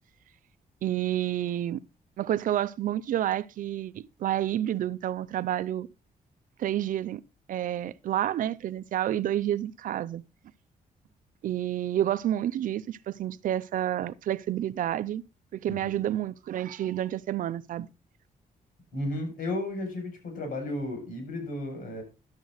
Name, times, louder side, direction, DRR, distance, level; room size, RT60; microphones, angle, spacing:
voice 1, 0.8-1.8 2.2-5.9 6.6-7.2 7.5-10.2 11.4-15.2 15.5-17.9, right 12 dB, 65° right, 0.6 m, -29 dB
voice 2, 15.7-16.0 18.9-22.0, left 1 dB, 75° left, 6.4 m, -33 dB
11.5 x 7.9 x 4.0 m
wide cardioid pair, 160°, 15 cm